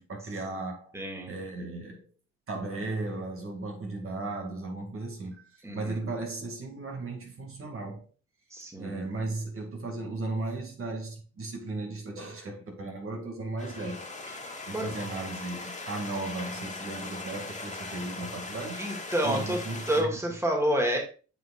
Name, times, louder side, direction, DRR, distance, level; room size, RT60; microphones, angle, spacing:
voice 1, 0.0-0.9 1.3-2.1 2.5-8.1 8.8-14.1 14.4-18.8 19.2-20.4, right 2 dB, 45° right, 2.1 m, -36 dB
voice 2, 0.9-1.3 5.6-6.0 8.5-9.0 14.7-14.9 18.8-19.6 19.9-21.0, equal, 10° right, 2.1 m, -28 dB
sound 1, 13.6-20.0, left 3 dB, 25° left, 2.2 m, -39 dB
9.1 x 6.3 x 2.4 m
cardioid pair, 90°, 30 cm